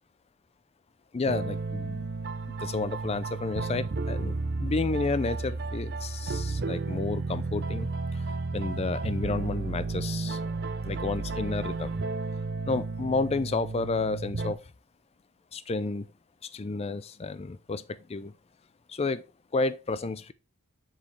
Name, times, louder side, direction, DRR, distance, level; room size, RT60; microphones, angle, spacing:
voice 1, 1.1-2.1 2.5-8.3 8.5-10.4 10.8-12.0 12.7-14.7 15.5-16.1 16.4-18.3 18.9-19.2 19.5-20.3, left 3 dB, 25° left, 0.4 m, -31 dB
sound 1, 1.3-14.5, right 3 dB, 45° right, 0.6 m, -32 dB
7.2 x 4.7 x 3.2 m
head